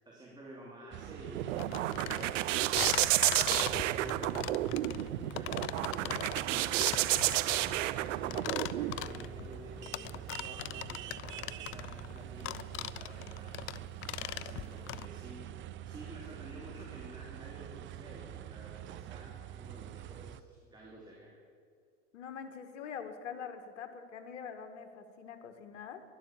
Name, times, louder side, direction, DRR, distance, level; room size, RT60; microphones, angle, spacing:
voice 1, 0.0-13.5 14.2-15.5 15.8-21.3, right 1 dB, 10° right, -3 dB, 2.8 m, -51 dB
sound 1, 0.9-20.4, right 11 dB, 30° right, 0.6 m, -45 dB
sound 2, 1.0-8.9, right 15 dB, 80° right, 0.6 m, -31 dB
sound 3, 1.6-15.1, left 15 dB, 35° left, 0.5 m, -40 dB
voice 2, 22.1-26.0, left 7 dB, 80° left, 7 dB, 1.6 m, -44 dB
12.0 x 11.5 x 7.2 m, 2.2 s
hypercardioid pair, 105°, 36 cm